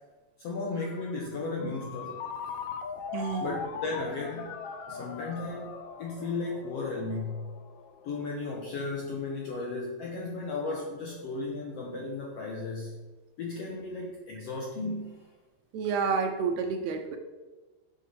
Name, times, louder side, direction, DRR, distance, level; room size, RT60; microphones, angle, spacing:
voice 1, 0.4-2.2 3.4-4.6 4.9-7.6 8.0-13.0 13.4-15.3, left 3 dB, 65° left, -1 dB, 1.7 m, -35 dB
Ringtone, 0.8-8.3, left 6 dB, 85° left, 1.3 m, -41 dB
voice 2, 3.1-3.7 15.7-17.2, right 5 dB, 70° right, 5 dB, 1.8 m, -29 dB
7.1 x 7.0 x 5.8 m, 1.2 s
omnidirectional pair, 3.7 m